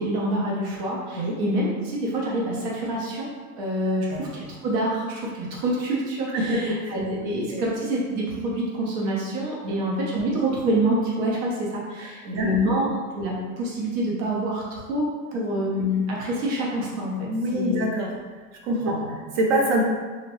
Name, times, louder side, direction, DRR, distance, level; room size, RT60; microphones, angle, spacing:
voice 1, 0.0-3.3 3.6-12.9 13.1-17.7 18.9-19.1, right 1 dB, 60° right, -4 dB, 1.0 m, -26 dB
voice 2, 6.3-6.9 7.5-7.6 9.6-9.8 12.0-12.5 17.3-18.1 18.6-19.8, right 1 dB, 40° right, 0 dB, 0.6 m, -25 dB
3.7 x 2.1 x 3.1 m, 1.4 s
supercardioid pair, 160°, 40 cm